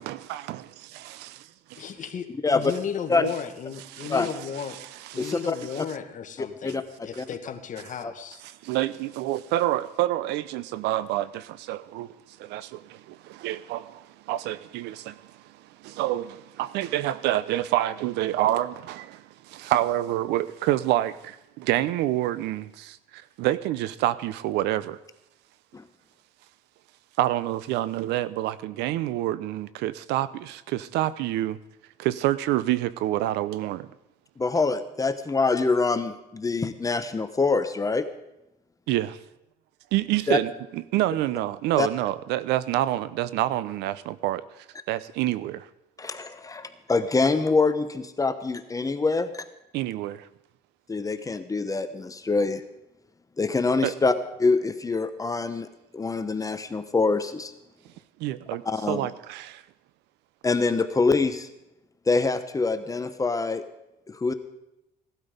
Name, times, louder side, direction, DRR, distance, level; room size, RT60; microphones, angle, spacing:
voice 1, 0.0-1.9 3.2-3.3 3.9-4.8 5.1-5.4 5.7-5.8 8.6-12.1 12.4-25.0 27.2-31.6 32.0-33.9 38.9-39.2 39.9-44.4 44.9-45.7 49.7-50.3 53.8-53.9 58.2-59.6, right 14 dB, 90° right, 0.7 m, -28 dB
voice 2, 1.8-4.8 5.1-8.4, left 8 dB, 50° left, 1.6 m, -35 dB
voice 3, 5.2-5.5 6.6-6.8 7.2-7.3 8.0-8.1 25.7-25.8 34.4-38.0 40.3-40.4 41.8-41.9 46.0-49.5 50.9-52.6 53.4-54.1 54.4-55.7 55.9-57.5 58.6-59.0 60.4-61.5 62.1-63.6 64.1-64.3, left 3 dB, 20° left, 1.0 m, -25 dB
17.5 x 12.5 x 5.2 m
cardioid pair, 110°, 17 cm